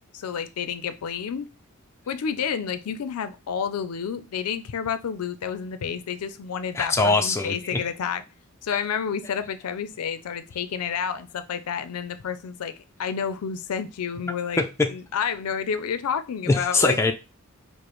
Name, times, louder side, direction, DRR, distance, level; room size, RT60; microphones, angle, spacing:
voice 1, 0.1-1.5 2.1-8.2 8.6-12.7 13.0-14.6 14.9-17.0, left 7 dB, 90° left, 0.4 m, -30 dB
voice 2, 6.7-7.8 14.6-14.9 16.5-17.1, left 3 dB, 10° left, 0.4 m, -22 dB
4.9 x 2.1 x 3.0 m
head